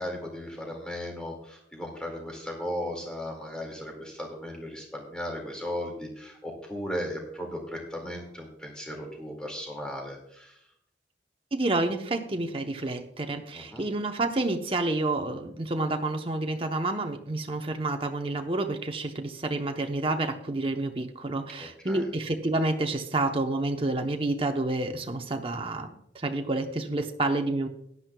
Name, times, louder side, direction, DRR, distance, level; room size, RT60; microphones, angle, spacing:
voice 1, 0.0-10.6 13.5-13.9 21.6-22.0, equal, 5° left, 0 dB, 2.1 m, -36 dB
voice 2, 11.5-27.7, right 2 dB, 30° right, 5 dB, 0.8 m, -29 dB
16.0 x 11.0 x 2.3 m, 0.72 s
head